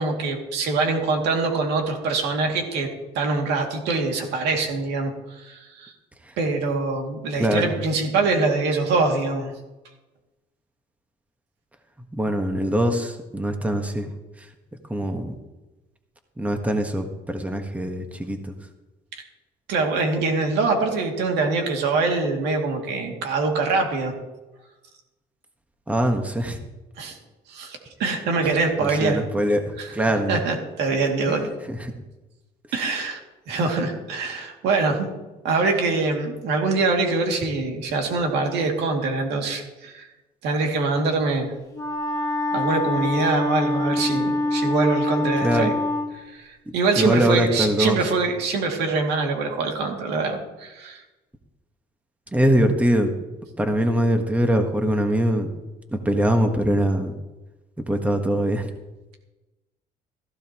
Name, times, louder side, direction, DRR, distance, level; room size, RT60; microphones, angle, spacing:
voice 1, 0.0-2.9 3.1-5.9 6.4-9.5 19.2-19.3 19.7-24.1 27.0-27.2 27.5-29.2 29.8-29.9 30.3-31.5 32.7-33.2 33.5-35.1 35.4-40.1 40.4-41.5 42.5-45.7 46.2-51.0, right 3 dB, 85° right, 2 dB, 2.5 m, -24 dB
voice 2, 7.4-7.7 12.1-14.1 14.4-14.5 14.9-15.4 16.4-18.5 25.9-26.6 28.8-30.4 31.3-31.4 31.7-31.9 45.4-45.7 47.0-48.0 52.3-53.1 53.6-55.5 55.9-57.1 57.9-58.7, right 1 dB, 10° right, 5 dB, 1.4 m, -22 dB
Wind instrument woodwind instrument, 41.7-46.1, left 2 dB, 20° left, 2.5 m, -25 dB
16.5 x 14.5 x 3.0 m, 1.1 s
cardioid pair, 110°, 17 cm